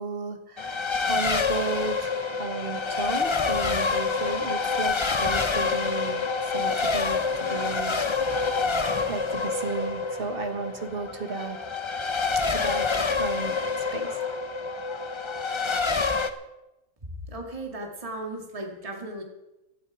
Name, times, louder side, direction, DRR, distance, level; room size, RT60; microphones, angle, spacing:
voice 1, 0.0-8.7 9.1-11.6 12.5-13.6 13.9-14.2, right 4 dB, 45° right, 6 dB, 1.6 m, -34 dB
Race car auto racing, 0.6-16.3, left 4 dB, 30° left, 0.5 m, -27 dB
voice 2, 17.3-19.2, right 2 dB, 25° right, 1 dB, 2.0 m, -36 dB
16.5 x 12.0 x 4.8 m, 0.97 s
omnidirectional pair, 1.5 m